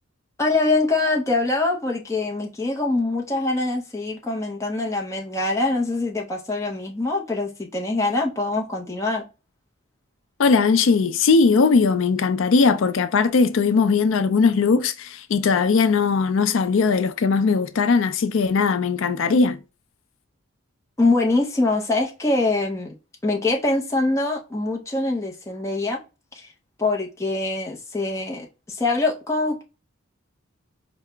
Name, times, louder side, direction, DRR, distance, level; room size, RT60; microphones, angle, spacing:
voice 1, 0.4-9.2 21.0-22.9 23.2-26.0 26.3-26.5 26.8-29.6, left 2 dB, 15° left, 0.5 m, -24 dB
voice 2, 10.4-19.6, left 4 dB, 65° left, 0.4 m, -19 dB
4.6 x 2.0 x 3.2 m
head